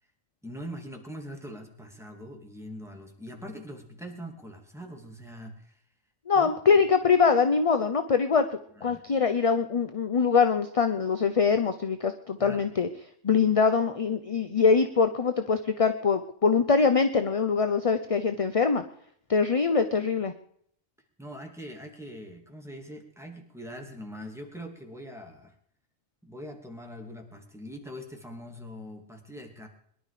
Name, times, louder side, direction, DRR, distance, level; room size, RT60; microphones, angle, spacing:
voice 1, 0.4-5.8 6.3-6.8 8.8-9.0 12.4-12.6 21.2-25.5 26.2-29.7, equal, ahead, 1 dB, 2.6 m, -42 dB
voice 2, 6.3-8.4 8.8-12.9 13.2-18.8 19.3-20.3, left 5 dB, 35° left, 9 dB, 0.7 m, -23 dB
22.5 x 11.5 x 5.0 m, 0.66 s
omnidirectional pair, 1.3 m